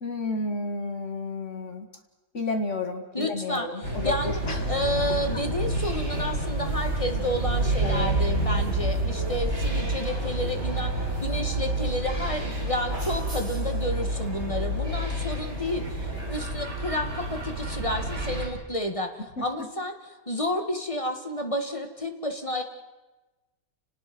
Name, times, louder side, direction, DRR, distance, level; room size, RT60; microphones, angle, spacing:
voice 1, 0.0-1.9 2.3-4.7 7.8-8.1 19.4-19.7, left 3 dB, 45° left, 5 dB, 2.5 m, -31 dB
voice 2, 3.1-4.4 4.7-20.0 20.3-22.6, left 1 dB, 20° left, 4 dB, 2.0 m, -31 dB
sound 1, 3.8-18.5, right 1 dB, 40° right, 5.7 m, -28 dB
29.5 x 19.5 x 6.2 m, 1.1 s
omnidirectional pair, 1.8 m